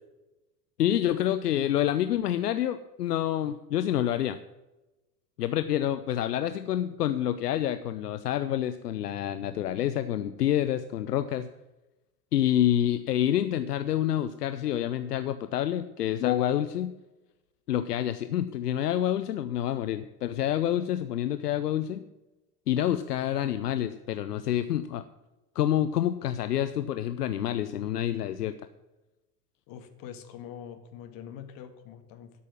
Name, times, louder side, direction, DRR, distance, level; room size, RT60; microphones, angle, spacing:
voice 1, 0.8-4.4 5.4-11.5 12.3-16.9 17.7-22.0 22.7-25.0 25.5-28.6, left 11 dB, 75° left, 10 dB, 0.7 m, -27 dB
voice 2, 29.7-32.4, left 9 dB, 45° left, 6 dB, 1.9 m, -44 dB
12.5 x 6.3 x 7.3 m, 1.0 s
figure-of-eight pair, 80°, 48 cm